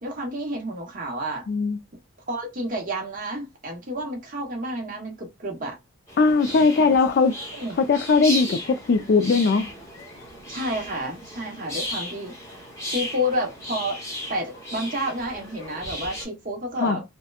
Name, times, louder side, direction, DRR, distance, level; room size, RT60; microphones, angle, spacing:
voice 1, 0.0-1.4 2.3-5.8 6.8-6.9 7.5-7.7 10.5-12.4 12.9-14.0 14.3-17.0, equal, 40° right, 0.9 m, -30 dB
voice 2, 1.5-1.8 6.2-7.3 7.8-9.7 16.8-17.0, left 4 dB, 50° left, 0.3 m, -20 dB
sound 1, 6.1-16.3, left 1 dB, 15° left, 0.9 m, -35 dB
2.8 x 2.1 x 2.3 m
head